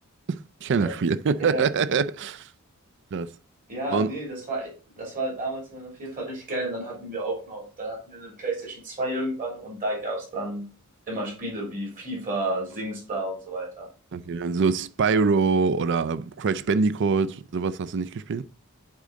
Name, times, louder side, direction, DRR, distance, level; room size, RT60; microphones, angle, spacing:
voice 1, 0.3-2.5 3.1-3.3 3.9-4.1 14.1-18.4, right 5 dB, 55° right, 0.4 m, -24 dB
voice 2, 3.7-10.7 11.1-13.9, right 1 dB, 40° right, 3.2 m, -31 dB
8.5 x 3.7 x 4.0 m
head